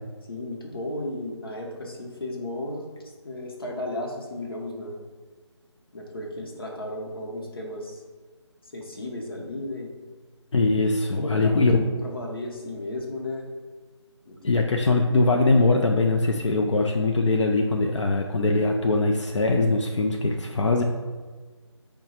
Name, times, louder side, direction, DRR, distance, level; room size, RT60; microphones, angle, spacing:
voice 1, 0.3-2.9 3.2-5.0 5.9-8.0 8.6-9.9 11.2-13.5 14.2-14.7, left 1 dB, 50° left, 0 dB, 0.9 m, -34 dB
voice 2, 10.5-11.9 14.4-20.8, left 3 dB, 80° left, 1 dB, 0.5 m, -22 dB
4.8 x 2.2 x 4.2 m, 1.4 s
figure-of-eight pair, 175°, 15 cm